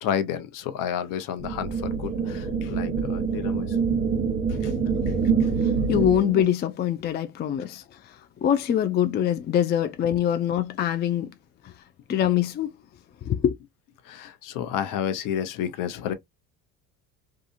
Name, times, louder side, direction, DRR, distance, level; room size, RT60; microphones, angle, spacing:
voice 1, 0.0-3.8 4.6-4.7 5.1-5.2 14.0-16.1, left 9 dB, 60° left, 0.8 m, -31 dB
sound 1, 1.4-6.4, right 5 dB, 25° right, 1.0 m, -25 dB
voice 2, 5.6-11.3 11.6-11.7 12.1-12.7 13.2-13.5, left 10 dB, 30° left, 0.4 m, -24 dB
2.7 x 2.4 x 2.4 m
supercardioid pair, 90°, 37 cm